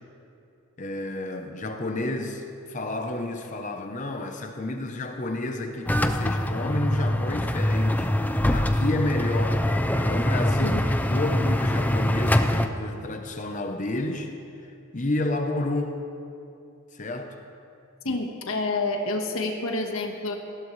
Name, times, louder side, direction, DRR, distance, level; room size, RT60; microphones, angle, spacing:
voice 1, 0.8-8.1 8.5-9.6 10.0-14.3 14.6-16.0 16.9-17.3 18.0-18.2, left 2 dB, 35° left, 5 dB, 0.8 m, -30 dB
sound 1, 5.9-12.7, left 1 dB, 10° left, 0.4 m, -24 dB
voice 2, 18.0-20.3, left 2 dB, 75° left, 3 dB, 1.5 m, -28 dB
19.0 x 16.0 x 3.2 m, 2.7 s
head